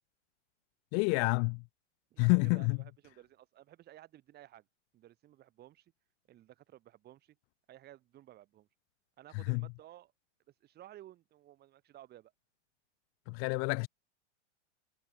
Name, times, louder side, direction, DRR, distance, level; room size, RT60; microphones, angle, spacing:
voice 1, 0.9-1.6 2.2-2.8 9.5-9.7 13.3-13.9, left 40 dB or more, 35° left, 1.2 m, -28 dB
voice 2, 2.1-4.7 4.9-5.9 6.3-7.4 7.7-8.7 9.2-10.1 10.6-12.3, right 13 dB, 25° right, 5.2 m, -55 dB
hypercardioid pair, 140°, 36 cm